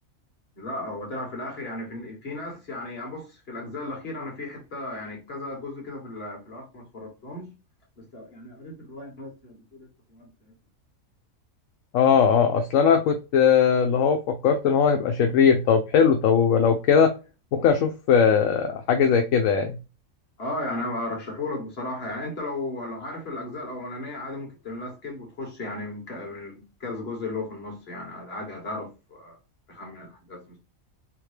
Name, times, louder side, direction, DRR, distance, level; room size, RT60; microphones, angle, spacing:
voice 1, 0.6-7.5 8.0-10.5 20.4-29.4 29.7-30.6, left 2 dB, 45° left, 1.7 m, -35 dB
voice 2, 11.9-17.1 17.5-19.8, left 6 dB, 75° left, 1.0 m, -20 dB
3.6 x 3.0 x 3.2 m
omnidirectional pair, 1.4 m